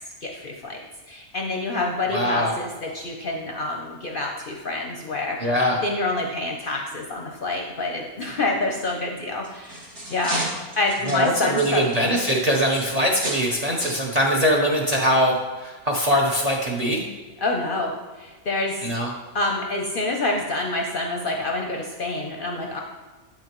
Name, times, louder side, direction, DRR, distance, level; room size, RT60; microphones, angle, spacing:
voice 1, 0.2-0.8 1.1-5.5 5.8-10.4 10.8-11.8 17.4-17.9 18.2-18.8 19.3-22.8, left 2 dB, 50° left, 1 dB, 0.7 m, -27 dB
voice 2, 2.1-2.5 5.4-5.8 11.0-17.0 18.8-19.1, equal, 40° right, -1 dB, 0.6 m, -22 dB
sound 1, 9.3-13.5 13.8-14.0 14.7-14.9 15.4-15.5, right 1 dB, 55° right, 2.2 m, -33 dB
8.6 x 5.9 x 3.0 m, 1.3 s
omnidirectional pair, 1.5 m